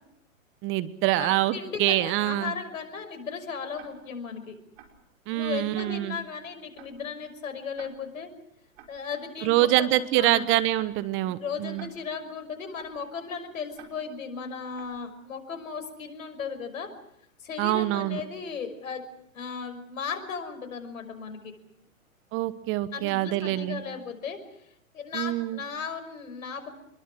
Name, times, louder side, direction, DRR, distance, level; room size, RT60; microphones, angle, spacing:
voice 1, 0.6-2.5 5.3-6.2 9.4-11.9 17.6-18.2 22.3-23.8 25.1-25.6, right 15 dB, 30° right, 14 dB, 1.3 m, -25 dB
voice 2, 1.2-4.6 5.3-8.3 8.9-9.9 10.2-10.5 11.4-16.9 17.4-19.1 19.3-21.5 22.9-24.7 24.9-26.7, left 5 dB, 70° left, 7 dB, 5.9 m, -36 dB
Tick-tock, 3.7-4.2 4.8-5.1 5.8-6.2 6.8-7.1 7.8-8.2 8.8-9.1 9.8-10.2 10.8-11.1 11.8-12.2 12.8-13.1 13.7-14.2 14.7-15.1, right 7 dB, 50° right, 5.9 m, -52 dB
27.5 x 22.5 x 6.3 m, 0.79 s
hypercardioid pair, 120°, 42 cm